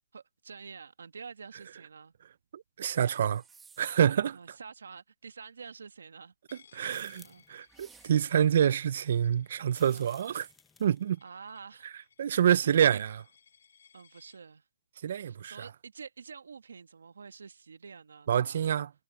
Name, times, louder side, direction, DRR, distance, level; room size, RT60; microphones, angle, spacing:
voice 1, 0.1-2.1 4.3-6.3 6.8-7.4 9.9-10.2 11.2-11.9 12.6-13.0 13.9-14.6 15.2-18.7, right 5 dB, 85° right, 1.7 m, -48 dB
voice 2, 2.5-3.4 3.8-4.4 6.7-7.2 7.5-10.5 10.8-11.2 12.2-13.1 15.0-15.5 18.3-18.9, right 9 dB, 60° right, 0.6 m, -26 dB
sound 1, 2.8-4.2 7.7-8.5, right 5 dB, 10° right, 1.8 m, -59 dB
Coin (dropping), 6.5-14.4, left 7 dB, 75° left, 4.7 m, -63 dB
sound 2, 6.8-7.6 9.7-11.1, left 5 dB, 10° left, 0.8 m, -58 dB
hypercardioid pair, 150°, 0 cm